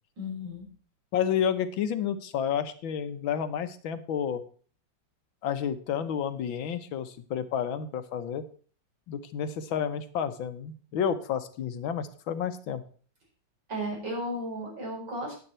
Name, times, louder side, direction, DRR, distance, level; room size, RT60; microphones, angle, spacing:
voice 1, 0.2-0.7 13.7-15.4, equal, 65° right, -2 dB, 5.4 m, -34 dB
voice 2, 1.1-4.4 5.4-8.4 9.1-12.8, left 8 dB, 85° left, 11 dB, 1.8 m, -30 dB
9.8 x 9.6 x 4.4 m, 0.43 s
omnidirectional pair, 2.1 m